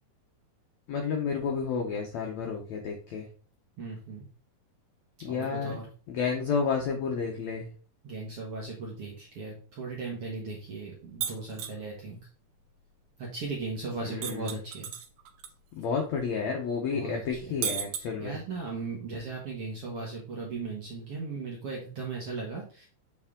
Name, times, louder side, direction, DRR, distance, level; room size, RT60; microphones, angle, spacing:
voice 1, 0.9-3.3 5.2-5.8 6.1-7.7 14.0-14.6 15.8-18.4, left 5 dB, 75° left, 2 dB, 1.6 m, -31 dB
voice 2, 3.8-4.2 5.2-5.9 8.0-12.2 13.2-14.9 16.9-17.5 18.2-22.9, right 3 dB, 65° right, -2 dB, 1.4 m, -37 dB
sound 1, 11.2-11.8 14.2-15.5 15.8-15.9 17.6-18.6, right 9 dB, 85° right, 1.6 m, -34 dB
7.0 x 4.5 x 3.6 m, 0.39 s
omnidirectional pair, 4.4 m